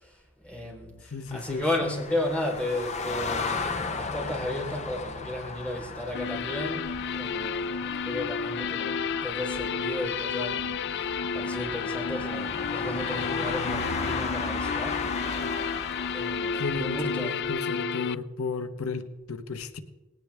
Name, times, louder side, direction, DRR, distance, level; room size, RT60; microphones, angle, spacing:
voice 1, 0.0-15.6 16.1-17.4, left 1 dB, 5° left, 4.0 m, -34 dB
voice 2, 1.1-2.0 16.6-19.8, left 4 dB, 80° left, 1.1 m, -34 dB
sound 1, 1.3-17.2, left 4 dB, 30° left, 0.9 m, -36 dB
sound 2, 6.1-18.1, left 6 dB, 50° left, 0.4 m, -31 dB
20.0 x 17.0 x 3.6 m
head